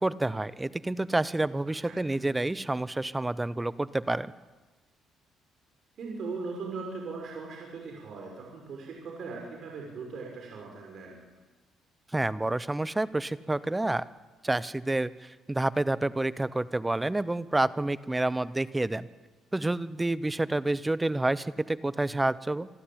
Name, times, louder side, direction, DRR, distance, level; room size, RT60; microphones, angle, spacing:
voice 1, 0.0-4.3 12.1-14.0 14.4-19.1 19.5-22.7, right 2 dB, 15° right, 17 dB, 0.8 m, -29 dB
voice 2, 6.0-11.2, right 4 dB, 60° right, 0 dB, 5.5 m, -39 dB
27.0 x 12.5 x 8.8 m, 1.2 s
cardioid pair, 90°, 0 cm